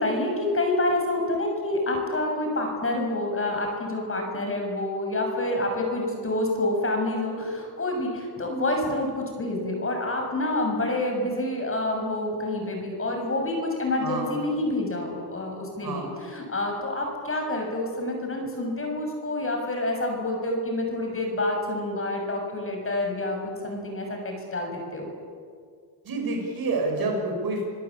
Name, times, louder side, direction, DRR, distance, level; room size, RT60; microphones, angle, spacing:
voice 1, 0.0-23.4 23.6-25.1, left 2 dB, 30° left, 2 dB, 6.9 m, -28 dB
voice 2, 15.8-16.1 26.0-27.7, right 2 dB, 50° right, 2 dB, 7.0 m, -28 dB
27.5 x 17.0 x 8.6 m, 2.1 s
cardioid pair, 105°, 45 cm